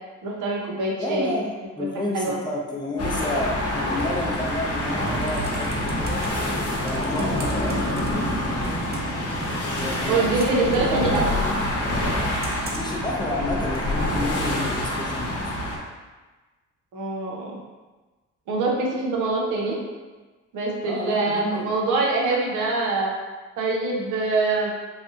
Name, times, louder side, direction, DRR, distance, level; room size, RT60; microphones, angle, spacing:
voice 1, 0.2-1.4 1.8-1.9 2.1-2.4 7.1-7.3 10.1-11.4 16.9-17.5 18.5-19.8 20.5-23.1 23.6-24.7, right 3 dB, 85° right, -2 dB, 0.7 m, -24 dB
voice 2, 1.0-6.2 6.8-8.8 9.8-10.7 11.0-11.2 12.7-15.5 20.8-21.7, left 1 dB, 15° left, -2 dB, 0.5 m, -31 dB
sound 1, 3.0-15.8, left 1 dB, 55° left, 0.8 m, -26 dB
Computer keyboard, 4.8-6.3 6.8-8.4 8.6-9.2 9.7-11.3 12.4-13.0 13.7-13.8, right 2 dB, 35° right, 0.6 m, -40 dB
3.3 x 2.5 x 2.6 m, 1.2 s
cardioid pair, 90°, 30 cm